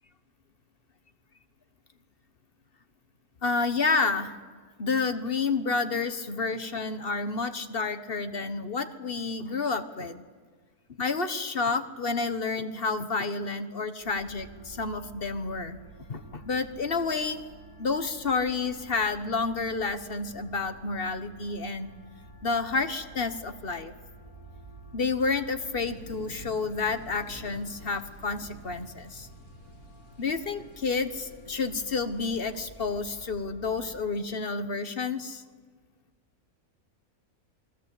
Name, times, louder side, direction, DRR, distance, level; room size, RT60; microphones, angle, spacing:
voice 1, 3.4-4.3 4.8-10.2 11.0-15.8 16.1-17.4 17.8-21.9 22.4-23.9 24.9-29.3 30.2-35.4, left 4 dB, 45° left, 10 dB, 1.4 m, -30 dB
sound 1, 14.0-33.9, right 2 dB, 15° right, 6.2 m, -50 dB
sound 2, 25.7-33.0, left 1 dB, 85° left, 5.1 m, -51 dB
28.0 x 22.0 x 8.4 m, 1.5 s
omnidirectional pair, 1.5 m